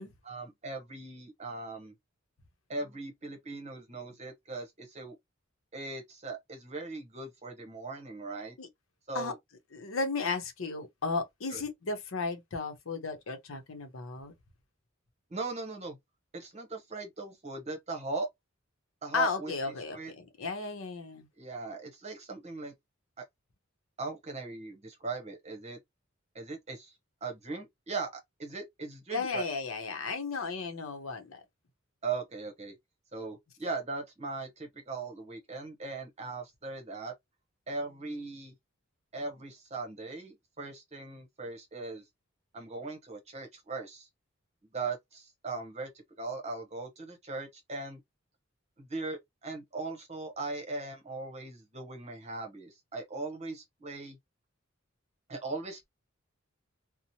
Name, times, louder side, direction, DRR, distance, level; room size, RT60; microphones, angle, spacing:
voice 1, 0.2-1.9 2.7-5.2 5.7-8.6 9.1-9.4 11.5-11.6 15.3-16.0 16.3-18.3 19.0-19.5 19.9-20.1 21.3-22.7 23.2-23.3 24.0-25.8 26.3-26.9 27.2-29.4 32.0-32.8 33.1-37.1 37.7-38.5 39.1-42.0 42.5-44.1 44.7-45.9 46.2-48.0 48.8-54.2 55.3-55.9, right 3 dB, 35° right, 0.8 m, -39 dB
voice 2, 9.7-14.3 19.1-21.3 29.1-31.4, left 4 dB, 80° left, 0.7 m, -34 dB
2.9 x 2.0 x 2.6 m
head